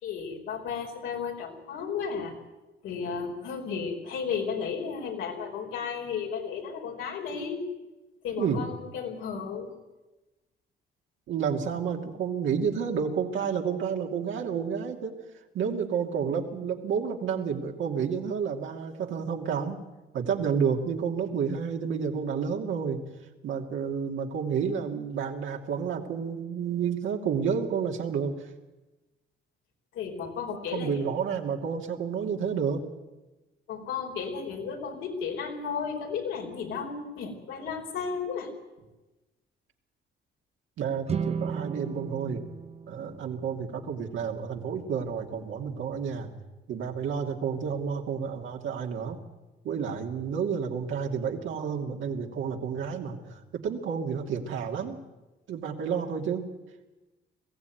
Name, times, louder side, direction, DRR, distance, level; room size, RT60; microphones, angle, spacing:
voice 1, 0.0-2.3 2.8-7.6 8.2-9.7 29.9-31.0 33.7-38.5, left 6 dB, 90° left, 1 dB, 4.6 m, -34 dB
voice 2, 8.4-8.7 11.3-15.2 15.5-19.8 20.1-23.0 23.4-28.5 30.5-32.8 40.8-42.4 42.9-46.3 46.7-49.2 49.6-55.0 55.5-56.5, right 6 dB, 80° right, 2 dB, 2.6 m, -30 dB
sound 1, 41.0-44.3, right 6 dB, 30° right, 0.9 m, -35 dB
21.5 x 15.5 x 9.4 m, 1.1 s
cardioid pair, 90°, 20 cm